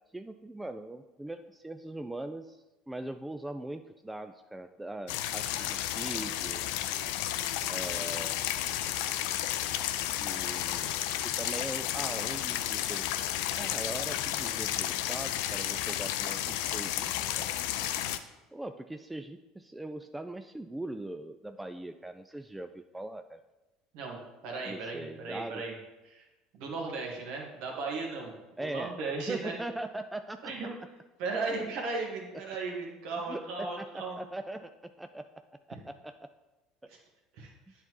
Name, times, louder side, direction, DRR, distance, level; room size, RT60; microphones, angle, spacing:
voice 1, 0.1-6.7 7.7-8.4 10.2-11.0 11.4-13.1 13.6-17.5 18.5-23.4 24.7-25.6 28.6-29.0 29.3-30.5 33.3-33.4 33.8-34.7 35.0-35.2 35.7-36.1, right 1 dB, 10° right, 8 dB, 0.3 m, -40 dB
sound 1, 5.1-18.2, left 12 dB, 65° left, 0.4 m, -32 dB
voice 2, 24.4-25.7 26.0-26.2 26.5-29.5 30.4-30.7 31.2-34.2 36.9-37.0 37.3-37.5, right 3 dB, 60° right, 0 dB, 1.6 m, -36 dB
10.5 x 4.0 x 3.0 m, 1.1 s
figure-of-eight pair, 65°, 0 cm